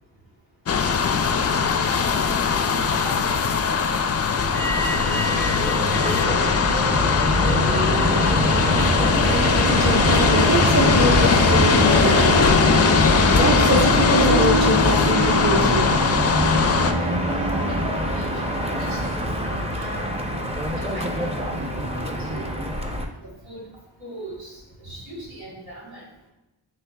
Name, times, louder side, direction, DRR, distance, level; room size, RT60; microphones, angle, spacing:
sound 1, 0.7-16.9, left 6 dB, 35° left, 0.4 m, -20 dB
voice 1, 1.5-2.4 2.7-4.2 4.5-7.0 17.6-19.2 19.8-20.2 20.8-22.5 23.2-23.7 24.0-26.0, equal, 90° right, -4 dB, 1.4 m, -38 dB
Motor vehicle (road), 4.5-23.0, equal, 15° right, 0.6 m, -24 dB
Harp, 8.9-9.0 9.2-18.7, right 4 dB, 70° right, 0.5 m, -29 dB
voice 2, 9.5-16.8, right 1 dB, 35° right, 0 dB, 0.9 m, -25 dB
5.9 x 3.1 x 2.2 m, 0.99 s
cardioid pair, 55°, 45 cm